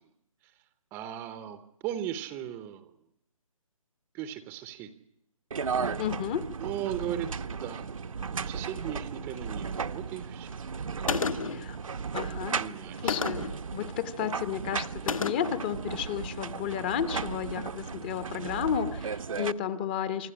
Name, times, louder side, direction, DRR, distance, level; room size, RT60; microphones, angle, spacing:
voice 1, 0.9-2.9 4.1-4.9 6.6-7.9 8.4-10.7 11.0-11.6 12.6-13.2, right 11 dB, 10° right, 11 dB, 0.8 m, -37 dB
sound 1, 5.5-19.5, right 5 dB, 70° right, 1.0 m, -35 dB
voice 2, 6.0-6.5 11.4-11.8 12.1-12.6 13.0-20.3, left 9 dB, 15° left, 13 dB, 0.9 m, -32 dB
Gunshot gunfire, 11.1-11.7 13.1-13.6 15.1-15.6, left 5 dB, 70° left, 1.6 m, -31 dB
26.5 x 12.0 x 9.8 m, 0.79 s
hypercardioid pair, 160°, 18 cm